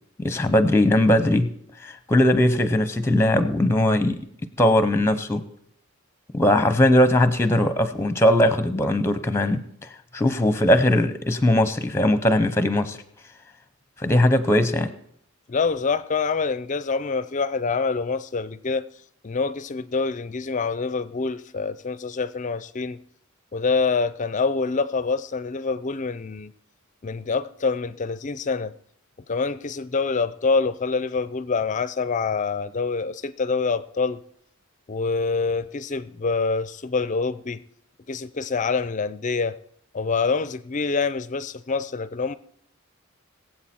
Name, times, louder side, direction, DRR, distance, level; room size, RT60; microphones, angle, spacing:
voice 1, 0.2-1.5 1.8-4.2 4.6-5.4 6.3-9.6 10.1-13.0 14.0-14.9, left 1 dB, 10° left, 0.8 m, -19 dB
voice 2, 15.5-18.9 19.2-23.0 23.5-26.5 27.0-28.7 29.3-34.2 34.9-37.6 38.1-39.6 39.9-42.4, left 4 dB, 35° left, 0.5 m, -26 dB
22.0 x 7.7 x 4.4 m
head